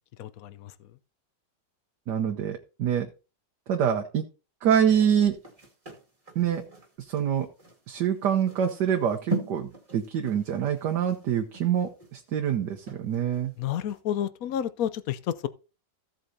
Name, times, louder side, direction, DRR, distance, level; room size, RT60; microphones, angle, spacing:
voice 1, 0.2-0.7 13.6-15.5, left 10 dB, 60° left, 1.0 m, -30 dB
voice 2, 2.1-3.1 3.7-4.2 4.6-5.4 6.3-6.6 7.0-7.5 7.9-13.5, right 8 dB, 70° right, 1.5 m, -25 dB
sound 1, 4.9-13.5 13.9-14.0, right 2 dB, 20° right, 2.3 m, -39 dB
15.5 x 7.9 x 2.8 m
omnidirectional pair, 2.0 m